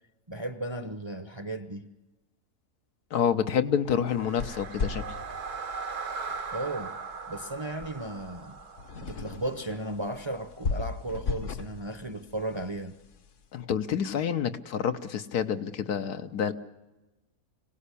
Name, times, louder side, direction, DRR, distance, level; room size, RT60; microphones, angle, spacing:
voice 1, 0.3-1.9 6.5-7.0 7.3-8.6 9.0-12.9, right 1 dB, 25° right, 0.7 m, -35 dB
voice 2, 3.1-5.0 13.5-16.5, left 8 dB, 80° left, 1.5 m, -28 dB
sound 1, 4.0-10.2, right 5 dB, 85° right, 1.9 m, -39 dB
sound 2, 4.1-13.5, left 4 dB, 55° left, 1.2 m, -38 dB
25.5 x 17.5 x 8.4 m
omnidirectional pair, 1.6 m